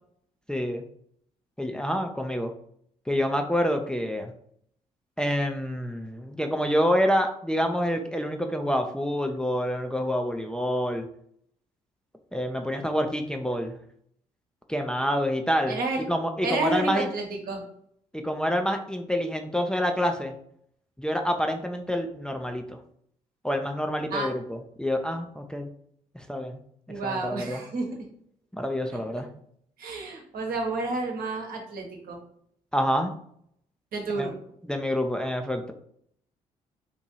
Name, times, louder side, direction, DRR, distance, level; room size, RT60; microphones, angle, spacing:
voice 1, 0.5-0.8 1.6-2.5 3.1-4.3 5.2-11.1 12.3-13.8 14.7-15.8 16.1-17.1 18.1-20.3 21.0-22.8 23.4-25.7 26.1-26.6 27.0-27.6 28.5-29.3 32.7-33.1 34.2-34.3 34.7-35.7, equal, 5° left, 4 dB, 0.5 m, -27 dB
voice 2, 15.7-16.0 16.4-17.6 24.1-24.3 26.9-27.9 28.9-29.2 29.8-32.2 33.9-34.3, right 3 dB, 65° right, 1 dB, 1.1 m, -30 dB
3.0 x 2.6 x 4.0 m, 0.66 s
hypercardioid pair, 45°, 16 cm